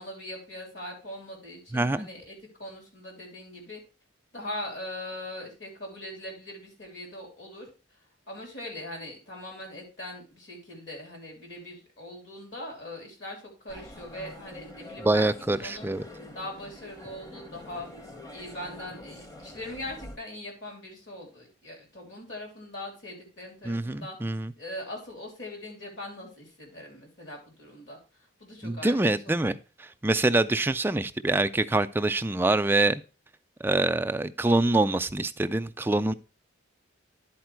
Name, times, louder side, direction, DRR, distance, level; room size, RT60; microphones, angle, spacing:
voice 1, 0.0-3.8 4.3-7.7 8.3-15.9 16.3-17.9 18.3-24.2 24.6-28.0 28.4-29.5, left 1 dB, 65° left, 3.2 m, -41 dB
voice 2, 1.7-2.1 15.0-16.0 23.7-24.5 28.6-29.6 30.0-33.0 33.6-36.1, right 2 dB, 10° right, 0.3 m, -25 dB
sound 1, 13.7-20.2, left 1 dB, 20° left, 0.7 m, -45 dB
10.5 x 4.4 x 4.5 m
head